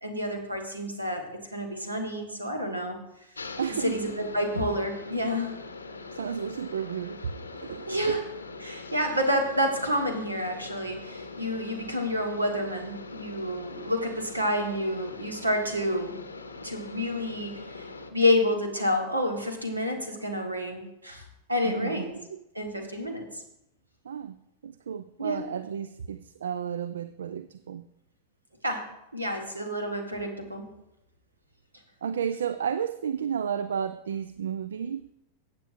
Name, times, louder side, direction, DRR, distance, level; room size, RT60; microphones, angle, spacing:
voice 1, 0.0-3.0 3.8-5.5 7.9-8.2 8.6-16.1 16.6-22.1 22.5-23.4 25.2-25.4 28.6-28.9 29.1-30.7, left 1 dB, 80° right, 1.5 m, -29 dB
sound 1, 3.4-18.1, left 3 dB, 75° left, 0.7 m, -42 dB
voice 2, 3.6-4.0 6.0-8.2 21.6-22.4 24.0-24.4 24.6-27.8 32.0-35.1, right 8 dB, 65° right, 0.3 m, -33 dB
14.5 x 8.2 x 2.6 m
figure-of-eight pair, 90°, 0 cm